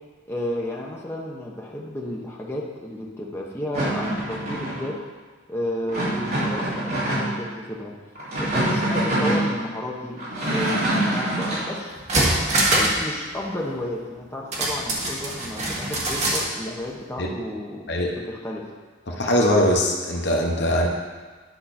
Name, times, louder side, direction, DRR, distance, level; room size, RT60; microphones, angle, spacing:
voice 1, 0.3-4.9 5.5-7.9 8.4-10.2 10.5-11.9 12.6-17.9 18.2-18.6, left 1 dB, 15° left, -3 dB, 1.0 m, -32 dB
sound 1, 3.7-4.9 5.9-7.4 8.2-9.5 10.2-11.7, right 1 dB, 55° right, 3.0 m, -25 dB
sound 2, 11.5-11.6 11.9-13.0 13.3-13.4 14.5-16.5 16.8-16.9, right 1 dB, 35° right, 1.5 m, -23 dB
voice 2, 19.1-20.9, equal, 60° left, 0 dB, 1.0 m, -21 dB
10.5 x 5.8 x 4.3 m, 1.4 s
head